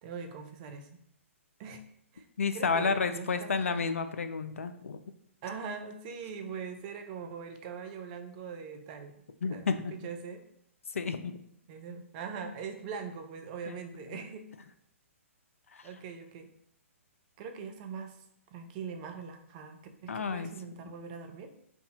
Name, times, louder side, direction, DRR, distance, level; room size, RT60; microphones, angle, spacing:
voice 1, 0.0-1.0 1.6-1.9 2.1-2.2 2.5-3.9 5.4-9.1 9.5-9.6 9.9-10.4 11.7-14.5 15.8-16.5 17.4-18.2 18.5-21.5, right 6 dB, 35° right, 6 dB, 0.6 m, -42 dB
voice 2, 2.4-5.0 9.4-9.9 10.9-11.3 13.7-13.8 14.0-14.2 15.7-15.8 20.1-20.5, left 5 dB, 70° left, 9 dB, 0.4 m, -31 dB
3.5 x 2.7 x 4.2 m, 0.70 s
figure-of-eight pair, 125°, 8 cm